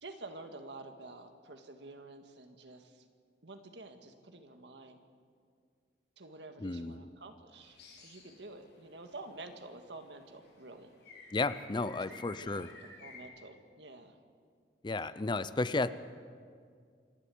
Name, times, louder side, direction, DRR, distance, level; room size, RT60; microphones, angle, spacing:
voice 1, 0.0-3.0 3.4-5.0 6.2-10.9 11.9-12.0 12.3-14.2, right 2 dB, 85° right, 6 dB, 1.8 m, -49 dB
voice 2, 6.6-7.1 11.3-12.7 14.8-15.9, left 3 dB, 25° left, 15 dB, 0.5 m, -33 dB
sound 1, 7.6-8.4 8.7-9.2 10.4-10.6 11.0-13.2, left 4 dB, 75° left, 6.7 m, -52 dB
26.5 x 12.0 x 8.5 m, 2.1 s
head